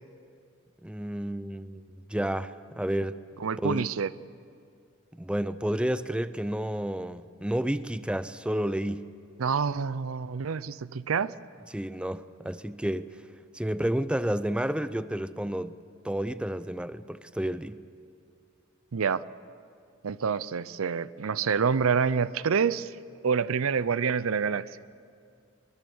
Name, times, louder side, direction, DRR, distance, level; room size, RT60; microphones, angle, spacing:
voice 1, 0.8-3.2 3.6-3.9 5.1-9.1 11.7-13.1 13.5-15.8 16.0-17.8, right 1 dB, 5° right, 0.5 m, -31 dB
voice 2, 3.4-4.1 9.4-11.3 18.9-19.2 20.0-22.9 23.2-24.8, right 6 dB, 85° right, 0.5 m, -27 dB
23.0 x 21.0 x 7.1 m
head